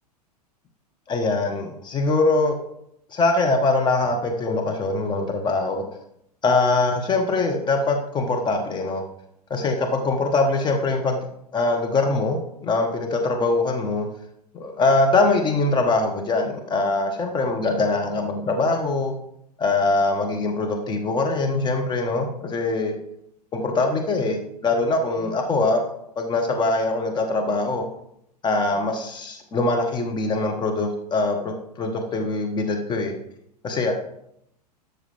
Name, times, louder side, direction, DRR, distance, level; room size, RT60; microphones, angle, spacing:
voice 1, 1.1-2.6 3.1-5.8 6.4-9.0 9.5-11.2 11.5-14.1 14.5-19.1 19.6-23.0 23.5-25.8 26.2-27.8 28.4-33.1 33.6-33.9, left 3 dB, 20° left, 3 dB, 1.2 m, -23 dB
12.5 x 6.5 x 3.3 m, 0.78 s
figure-of-eight pair, 95°, 21 cm